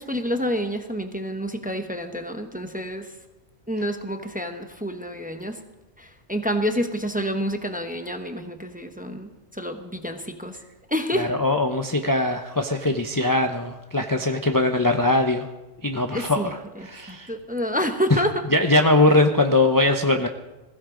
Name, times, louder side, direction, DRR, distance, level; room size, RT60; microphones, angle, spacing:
voice 1, 0.0-3.1 3.7-5.6 6.0-10.6 10.9-11.3 16.1-18.3, equal, 10° right, 6 dB, 1.0 m, -28 dB
voice 2, 11.1-15.5 15.8-16.6 16.9-17.3 18.1-18.2 18.5-20.3, left 2 dB, 20° left, 4 dB, 0.7 m, -21 dB
21.0 x 16.0 x 3.9 m, 1.1 s
omnidirectional pair, 1.2 m